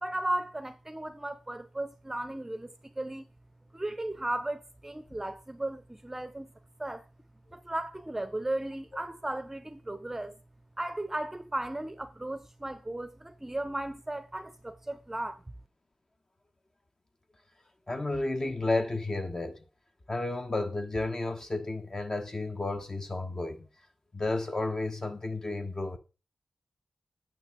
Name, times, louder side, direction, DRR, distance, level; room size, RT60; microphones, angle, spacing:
voice 1, 0.0-3.3 3.7-6.5 6.8-7.0 7.5-10.4 10.8-15.4, right 1 dB, 15° right, 0.7 m, -35 dB
voice 2, 17.9-19.6 20.1-23.7 24.1-26.0, left 2 dB, 30° left, 1.2 m, -32 dB
9.1 x 6.0 x 3.6 m
cardioid pair, 65°, 2 cm